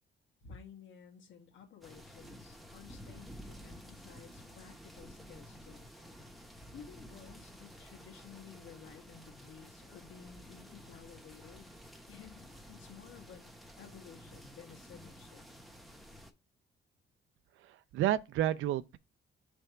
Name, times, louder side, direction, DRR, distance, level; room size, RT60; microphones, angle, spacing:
voice 1, 0.4-5.9 6.7-11.7 12.1-13.5 13.8-15.5, left 7 dB, 75° left, 1.6 m, -54 dB
sound 1, 1.8-16.3, equal, ahead, 1.0 m, -52 dB
voice 2, 17.6-19.0, right 12 dB, 80° right, 0.6 m, -31 dB
6.5 x 3.4 x 4.6 m
cardioid pair, 90°, 20 cm